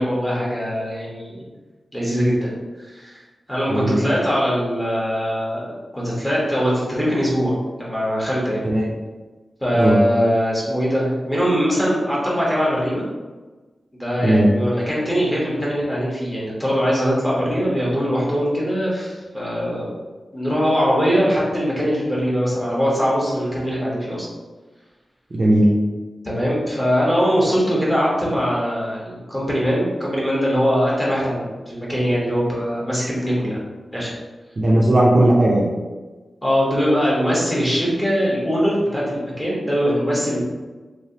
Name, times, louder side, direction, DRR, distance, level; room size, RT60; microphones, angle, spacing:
voice 1, 0.0-1.4 1.9-2.6 2.9-3.2 3.5-8.6 9.6-13.0 13.9-20.0 20.3-24.3 26.2-33.6 33.9-34.1 36.4-40.4, equal, 10° left, -6 dB, 1.2 m, -21 dB
voice 2, 25.3-25.7 34.6-35.7, right 1 dB, 45° right, -4 dB, 0.5 m, -16 dB
3.2 x 3.1 x 2.8 m, 1.3 s
wide cardioid pair, 115°, 0 cm